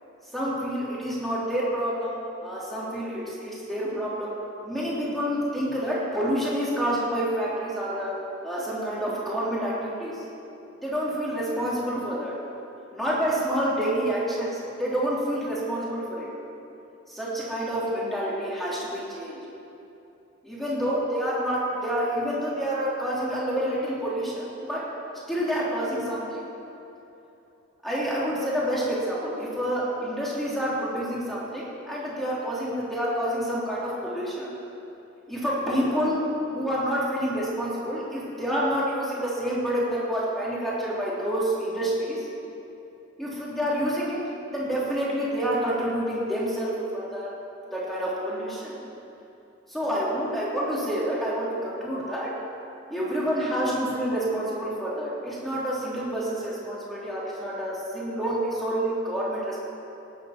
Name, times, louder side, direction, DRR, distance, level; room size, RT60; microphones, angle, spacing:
voice 1, 0.3-2.1 2.4-4.3 4.6-8.2 8.4-10.2 10.8-12.3 12.9-16.3 17.1-19.4 20.4-24.8 25.3-26.5 27.8-34.5 35.3-36.2 36.5-42.3 43.2-44.2 44.5-47.3 47.7-48.8 49.7-52.3 52.9-59.7, equal, ahead, -7 dB, 3.2 m, -28 dB
18.0 x 9.1 x 5.9 m, 2.9 s
head